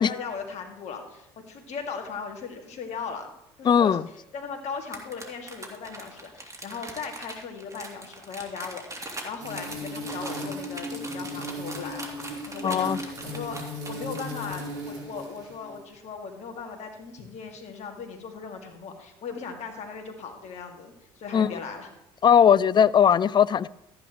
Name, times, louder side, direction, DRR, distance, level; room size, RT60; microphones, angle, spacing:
voice 1, 0.0-3.3 3.6-4.0 4.3-12.1 12.4-21.9, left 5 dB, 55° left, 2.4 m, -38 dB
voice 2, 3.6-4.0 12.6-13.0 21.3-21.5 22.2-23.7, left 8 dB, 35° left, 0.4 m, -19 dB
sound 1, 4.8-14.4, right 2 dB, 25° right, 3.0 m, -40 dB
sound 2, 9.4-15.8, equal, 70° right, 4.2 m, -36 dB
14.0 x 10.0 x 3.1 m
hypercardioid pair, 60°, 14 cm